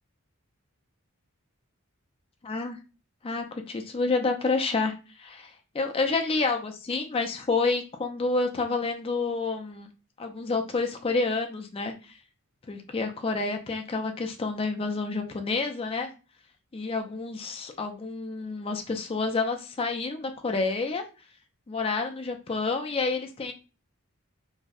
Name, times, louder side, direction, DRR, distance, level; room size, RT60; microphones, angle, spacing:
voice 1, 2.4-2.8 3.2-9.9 10.2-12.2 12.7-16.1 16.7-21.0 21.7-23.5, left 3 dB, 25° left, 4 dB, 0.3 m, -29 dB
2.6 x 2.0 x 2.3 m, 0.32 s
head